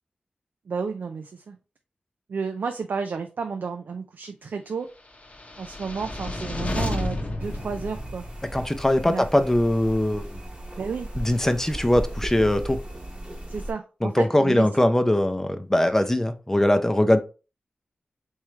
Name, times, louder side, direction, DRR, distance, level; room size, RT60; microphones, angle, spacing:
voice 1, 0.7-1.6 2.3-4.9 5.6-8.3 9.0-9.2 10.8-11.1 13.5-14.7, right 5 dB, 85° right, 0.3 m, -31 dB
sound 1, 5.2-8.7, left 1 dB, 45° left, 0.8 m, -31 dB
sound 2, 7.4-13.7, right 1 dB, 30° right, 1.0 m, -36 dB
voice 2, 8.5-10.3 11.2-12.8 14.0-17.2, left 1 dB, 15° left, 0.5 m, -21 dB
3.6 x 3.1 x 3.1 m
wide cardioid pair, 65°, 3 cm